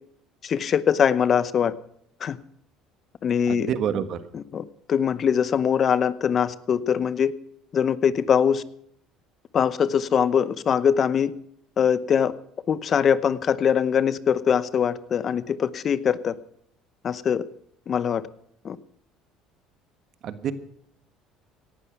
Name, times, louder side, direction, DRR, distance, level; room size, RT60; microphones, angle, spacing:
voice 1, 0.4-1.7 2.2-2.4 3.2-3.7 4.3-7.3 7.7-8.6 9.5-11.3 11.8-12.3 12.7-16.3 17.0-17.4 17.9-18.2 18.6-18.8, left 7 dB, 45° left, 17 dB, 0.8 m, -22 dB
voice 2, 3.5-4.2 20.2-20.5, right 8 dB, 55° right, 12 dB, 1.5 m, -27 dB
17.5 x 11.5 x 6.0 m, 0.69 s
supercardioid pair, 100°, 0 cm